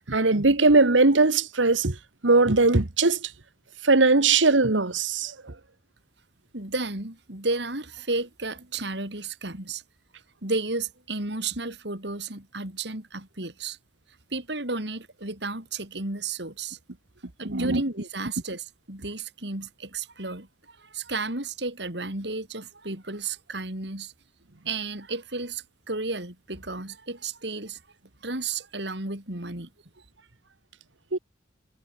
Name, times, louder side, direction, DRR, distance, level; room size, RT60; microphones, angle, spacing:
voice 1, 0.1-2.0 2.2-3.3 3.8-5.5 17.5-17.8 31.1-31.2, right 3 dB, 85° right, 1.6 m, -20 dB
voice 2, 6.5-9.8 10.4-13.8 14.3-16.8 17.4-24.1 24.7-27.8 28.2-29.7, right 3 dB, 65° right, 4.1 m, -33 dB
head